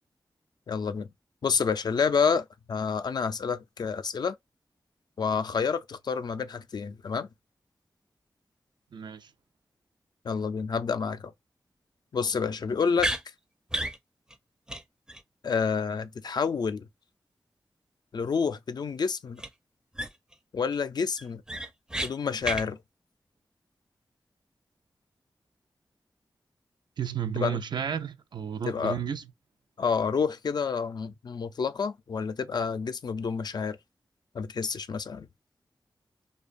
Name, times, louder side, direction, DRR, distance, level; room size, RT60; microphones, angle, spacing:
voice 1, 0.7-1.1 1.4-4.4 5.2-7.3 10.2-11.3 12.1-13.1 15.4-16.9 18.1-19.4 20.5-21.4 22.0-22.8 27.4-27.6 28.7-29.0 29.8-33.8 34.3-35.3, left 5 dB, 65° left, 0.3 m, -29 dB
voice 2, 8.9-9.3 27.0-29.3, right 8 dB, 70° right, 0.4 m, -32 dB
sound 1, 13.0-13.2 13.7-14.0 14.3-14.4 14.7-14.8 15.1-15.2 19.4-19.5 19.9-20.3 20.7-20.8 21.2-22.1 22.4-22.6, right 1 dB, 10° right, 0.4 m, -31 dB
2.5 x 2.2 x 2.4 m
cardioid pair, 60°, 8 cm